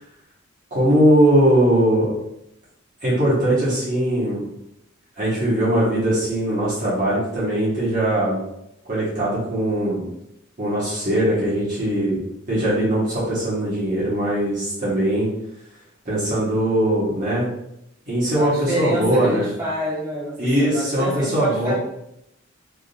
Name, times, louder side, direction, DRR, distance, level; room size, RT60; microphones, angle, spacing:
voice 1, 0.7-2.1 3.0-4.4 5.2-8.4 8.8-10.0 10.6-12.2 12.5-15.3 16.0-17.4 18.1-19.4 20.4-21.7, right 1 dB, 40° right, -9 dB, 1.3 m, -20 dB
voice 2, 18.3-21.7, equal, 15° right, -10 dB, 1.4 m, -27 dB
3.5 x 2.7 x 2.6 m, 0.79 s
head